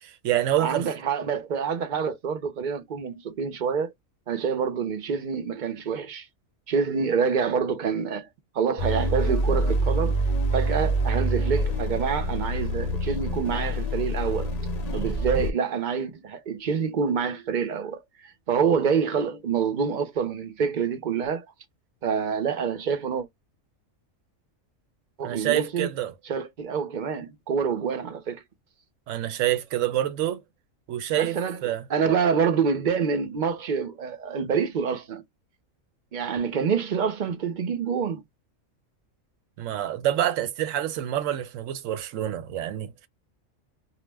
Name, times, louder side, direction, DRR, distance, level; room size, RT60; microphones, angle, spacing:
voice 1, 0.0-0.9 25.2-26.1 29.1-30.4 30.9-31.8 39.6-43.1, right 12 dB, 75° right, 0.9 m, -27 dB
voice 2, 0.6-3.9 4.3-6.3 6.7-8.3 8.5-10.2 10.5-14.5 14.9-21.5 22.0-23.3 25.2-25.9 26.2-28.4 31.1-35.2 36.1-38.2, right 6 dB, 50° right, 0.6 m, -27 dB
sound 1, 8.8-15.5, right 1 dB, 65° left, 0.4 m, -26 dB
2.4 x 2.0 x 3.2 m
omnidirectional pair, 1.4 m